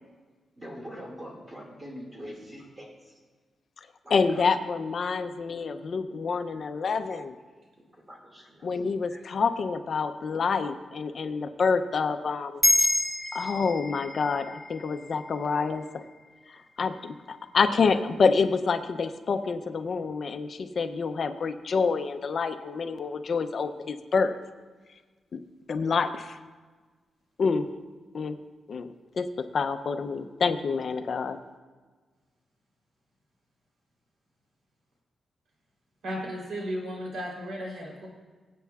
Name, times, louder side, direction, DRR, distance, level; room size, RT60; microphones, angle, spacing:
voice 1, 0.6-3.2 4.0-4.5 7.9-9.2, equal, 15° right, -1 dB, 2.0 m, -44 dB
voice 2, 4.1-7.3 8.6-12.6 13.3-15.9 16.8-24.3 25.3-25.4 25.7-26.4 27.4-27.7 28.1-28.4 28.7-28.9 29.2-29.3 29.5-31.4, left 5 dB, 45° left, 9 dB, 0.5 m, -27 dB
sound 1, 12.6-17.3, left 1 dB, 5° left, 1.4 m, -29 dB
voice 3, 36.0-38.1, equal, 85° right, -2 dB, 3.3 m, -34 dB
23.0 x 8.4 x 2.3 m, 1.4 s
wide cardioid pair, 160°, 0 cm